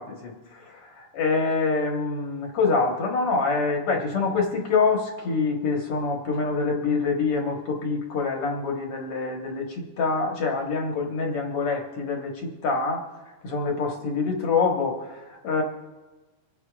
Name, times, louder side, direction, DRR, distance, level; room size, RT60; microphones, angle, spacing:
voice 1, 0.0-13.1 13.4-15.6, left 4 dB, 55° left, 1 dB, 1.9 m, -26 dB
26.0 x 10.0 x 2.5 m, 1.2 s
omnidirectional pair, 3.9 m